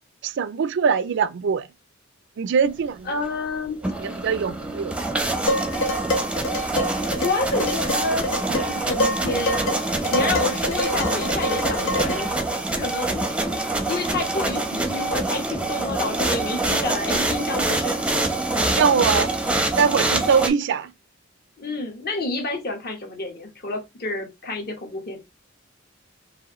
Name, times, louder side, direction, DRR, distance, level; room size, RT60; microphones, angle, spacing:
voice 1, 0.2-1.7 2.4-3.2 4.0-4.9 18.7-19.3 19.8-20.9, right 6 dB, 60° right, 0.4 m, -22 dB
voice 2, 3.1-3.8 7.2-9.8 10.1-13.2 13.8-18.0 21.6-25.2, left 2 dB, 50° left, 1.2 m, -29 dB
sound 1, 3.6-20.5, right 2 dB, 5° right, 0.6 m, -25 dB
Dishes pots and pans, 5.5-12.3, left 1 dB, 85° left, 1.2 m, -27 dB
4.8 x 2.6 x 3.0 m
head